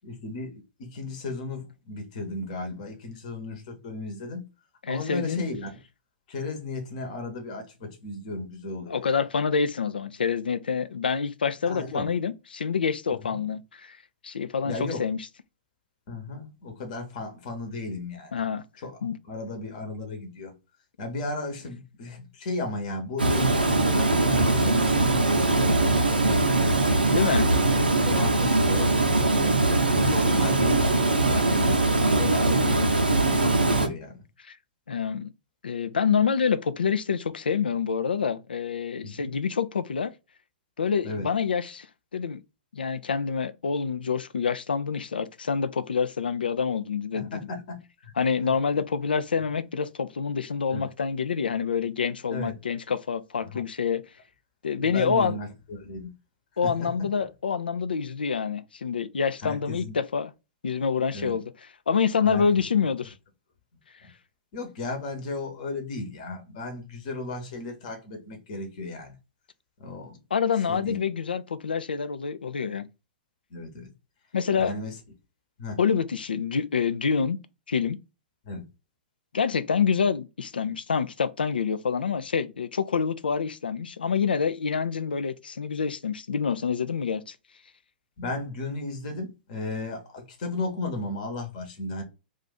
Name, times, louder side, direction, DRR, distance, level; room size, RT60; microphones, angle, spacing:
voice 1, 0.0-4.4 4.9-5.8 6.3-9.2 11.7-12.1 13.2-13.4 14.6-15.1 16.1-18.4 18.8-19.0 19.3-20.5 21.0-25.8 27.7-28.9 29.4-33.0 33.4-34.2 39.0-39.3 41.0-41.3 47.1-47.8 48.0-48.1 50.7-50.9 52.3-52.6 53.4-53.6 54.8-56.1 56.6-56.9 57.2-57.3 59.4-60.0 61.1-61.4 62.2-62.5 64.0-64.1 64.5-69.2 69.8-70.2 70.7-71.0 73.5-73.9 74.6-74.9 75.6-75.8 78.4-78.6 88.2-92.0, left 2 dB, 50° left, 0.9 m, -35 dB
voice 2, 4.9-5.4 8.9-14.0 14.2-15.3 18.3-18.6 19.0-19.2 27.1-27.6 34.4-34.6 34.9-35.3 35.6-40.1 40.8-41.9 42.1-42.4 42.7-47.5 48.2-54.0 54.6-55.4 56.6-60.3 60.6-61.4 61.9-63.1 70.3-72.9 74.3-74.7 75.8-77.4 77.7-78.0 79.3-87.4, left 6 dB, 80° left, 0.3 m, -27 dB
Water, 23.2-33.9, right 2 dB, 90° right, 0.7 m, -21 dB
2.5 x 2.4 x 4.0 m
figure-of-eight pair, 115°, 5 cm